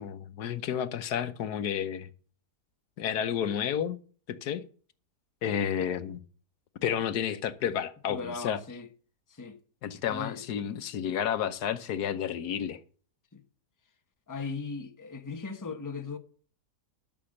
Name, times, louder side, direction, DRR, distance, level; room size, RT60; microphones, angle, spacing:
voice 1, 0.0-2.1 3.0-4.0 4.3-4.6 5.4-6.2 6.8-8.6 9.8-12.8, left 9 dB, 75° left, 1.4 m, -31 dB
voice 2, 8.1-8.9 9.3-9.5 10.1-10.4 13.3-13.4 14.3-16.2, left 4 dB, 15° left, 1.0 m, -38 dB
12.5 x 6.9 x 6.5 m
omnidirectional pair, 1.7 m